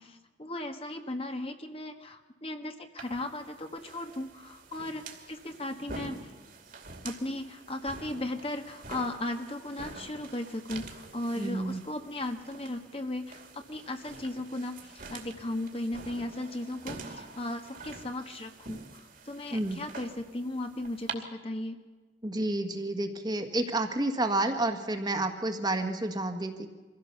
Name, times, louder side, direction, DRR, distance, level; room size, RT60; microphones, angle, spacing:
voice 1, 0.0-6.3 7.0-21.8, left 1 dB, 30° left, 6 dB, 1.4 m, -36 dB
sound 1, 3.0-21.1, right 3 dB, 50° right, 2.6 m, -46 dB
voice 2, 11.4-11.8 19.5-19.8 22.2-26.7, right 2 dB, 25° right, 6 dB, 1.7 m, -30 dB
24.5 x 16.0 x 7.0 m, 1.3 s
head